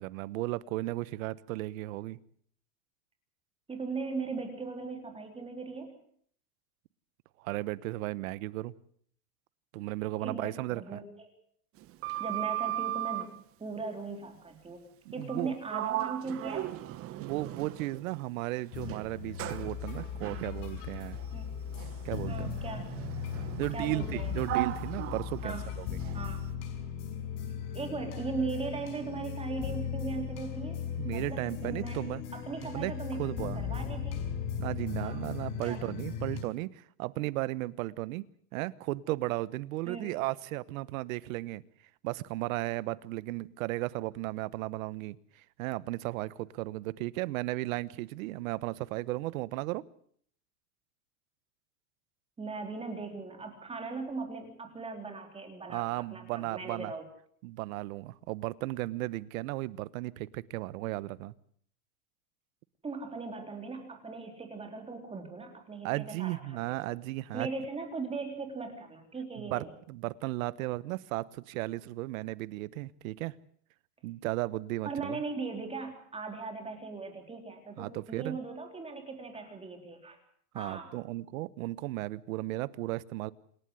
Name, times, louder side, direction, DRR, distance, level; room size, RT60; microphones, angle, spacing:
voice 1, 0.0-2.2 7.4-8.7 9.7-11.0 15.0-15.5 17.2-21.2 22.0-22.5 23.6-25.8 31.0-32.2 32.6-32.9 33.2-33.6 34.6-38.3 38.5-41.6 42.0-45.2 45.6-49.8 55.7-56.9 57.4-61.3 65.8-67.5 69.4-73.3 74.0-75.2 77.8-78.4 80.5-83.3, right 18 dB, 60° right, 18 dB, 1.1 m, -35 dB
voice 2, 3.7-5.9 10.2-11.3 12.2-16.7 21.3-21.6 22.3-23.0 23.7-24.3 25.4-25.7 26.1-26.4 27.7-30.8 31.1-34.2 35.0-35.3 35.6-35.8 39.9-40.2 52.4-57.1 62.8-66.9 67.3-69.7 74.8-80.2 80.5-80.9, right 4 dB, 10° right, 4 dB, 3.7 m, -39 dB
Sliding door, 11.8-13.4 15.2-15.4 15.7-18.2 18.8-26.3, right 15 dB, 30° right, 1.0 m, -37 dB
sound 1, 18.7-36.4, left 8 dB, 55° left, 5.9 m, -37 dB
28.0 x 11.5 x 9.6 m, 0.62 s
supercardioid pair, 145°, 47 cm